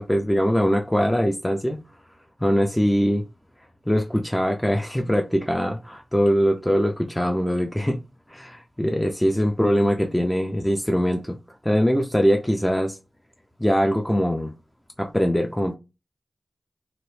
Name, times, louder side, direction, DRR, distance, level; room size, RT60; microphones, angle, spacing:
voice 1, 0.0-1.8 2.4-3.3 3.9-8.0 8.3-11.4 11.6-13.0 13.6-14.5 15.0-15.7, equal, 10° left, 0.4 m, -22 dB
2.9 x 2.0 x 3.1 m
wide cardioid pair, 60°, 0 cm